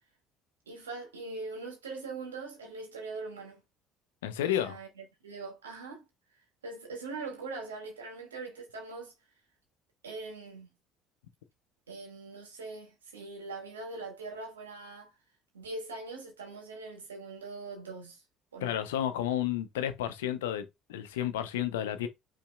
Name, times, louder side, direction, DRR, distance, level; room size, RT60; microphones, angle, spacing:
voice 1, 0.7-3.6 4.4-4.9 5.2-6.0 6.6-9.1 10.0-10.7 11.9-15.1 15.5-18.2 18.5-18.8, right 3 dB, 90° right, 1.8 m, -42 dB
voice 2, 4.2-4.8 18.6-22.1, left 11 dB, 80° left, 0.7 m, -31 dB
5.5 x 3.4 x 2.3 m
hypercardioid pair, 60°, 0 cm